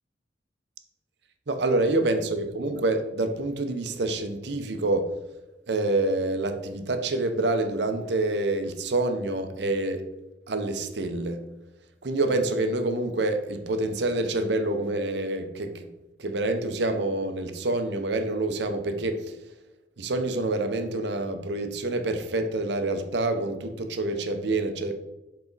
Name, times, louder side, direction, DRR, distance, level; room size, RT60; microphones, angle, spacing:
voice 1, 1.5-5.1 5.7-10.0 10.5-11.4 12.0-15.9 16.2-19.3 20.0-24.9, right 2 dB, 70° right, 7 dB, 0.7 m, -27 dB
7.1 x 4.2 x 4.0 m, 1.0 s
head